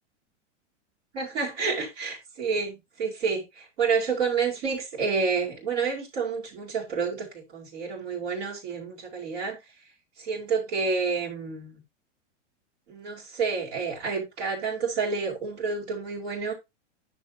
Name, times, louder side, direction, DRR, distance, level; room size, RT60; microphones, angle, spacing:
voice 1, 1.1-9.6 10.2-11.7 12.9-16.5, right 5 dB, 65° right, 3.9 m, -29 dB
9.4 x 6.8 x 2.8 m
hypercardioid pair, 130°, 36 cm